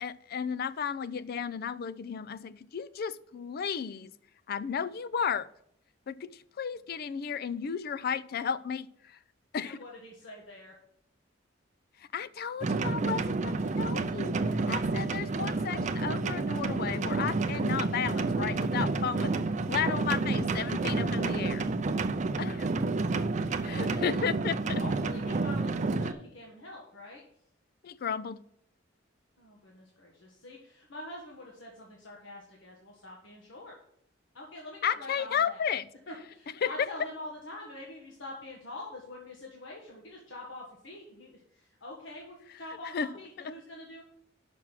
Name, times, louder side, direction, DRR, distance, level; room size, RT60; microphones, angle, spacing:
voice 1, 0.0-4.1 4.5-5.5 6.1-9.2 9.5-9.8 12.0-14.4 14.7-19.3 19.7-21.6 22.4-22.7 23.6-24.8 27.8-28.4 34.8-35.9 36.6-36.9 42.9-43.1, left 7 dB, 55° left, 0.4 m, -33 dB
voice 2, 9.6-10.7 22.2-22.7 24.8-27.2 29.4-33.8 34.3-35.6 36.1-44.0, left 1 dB, 75° left, 1.5 m, -45 dB
sound 1, 12.6-26.1, right 3 dB, 40° right, 0.5 m, -30 dB
6.1 x 6.0 x 7.3 m
head